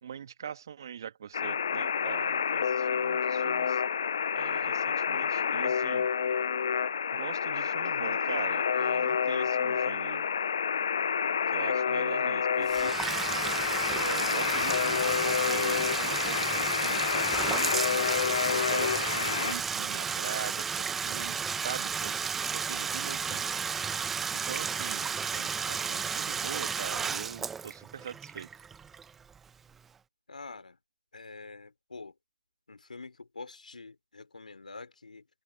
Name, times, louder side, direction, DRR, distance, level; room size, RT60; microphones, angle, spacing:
voice 1, 0.0-3.8 4.3-6.1 7.1-10.3 11.5-13.0 13.9-17.8 18.4-23.4 24.3-28.5, right 8 dB, 25° right, 1.9 m, -42 dB
Alarm, 1.3-19.5, left 7 dB, 25° left, 0.7 m, -29 dB
Bathtub (filling or washing), 12.6-29.4, right 6 dB, 5° right, 1.0 m, -33 dB
voice 2, 30.3-30.8 31.1-32.2 32.7-35.3, left 3 dB, 50° left, 4.7 m, -46 dB
figure-of-eight pair, 165°, 5 cm